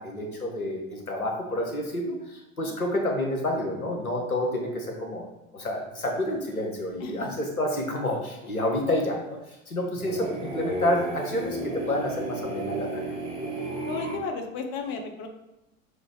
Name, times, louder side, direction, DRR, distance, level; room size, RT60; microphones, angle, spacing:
voice 1, 0.0-5.3 5.5-9.4 9.7-13.1, left 1 dB, 90° left, 1 dB, 0.9 m, -29 dB
sound 1, 6.1-6.3 9.9-14.2, right 1 dB, 15° right, 0.8 m, -32 dB
voice 2, 13.9-15.3, left 4 dB, 30° left, 3 dB, 0.5 m, -34 dB
6.4 x 2.4 x 3.2 m, 0.94 s
figure-of-eight pair, 85°, 42 cm